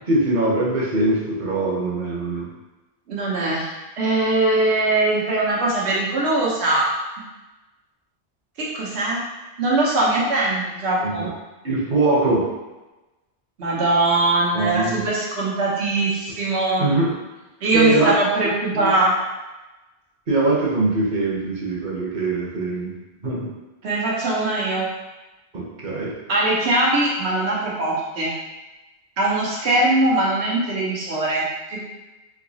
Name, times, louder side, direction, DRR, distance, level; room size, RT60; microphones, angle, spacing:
voice 1, 0.1-2.5 11.0-11.3 11.6-12.5 14.5-15.0 16.8-17.1 17.7-18.1 18.7-18.9 20.3-22.9 23.2-23.5 25.5-26.1, right 2 dB, 50° right, -5 dB, 0.9 m, -22 dB
voice 2, 3.1-6.9 8.6-9.2 9.6-11.3 13.6-16.9 17.6-19.2 23.8-24.9 26.3-28.3 29.2-31.9, right 2 dB, 85° right, -5 dB, 1.2 m, -21 dB
3.5 x 2.8 x 2.7 m, 1.1 s
omnidirectional pair, 1.1 m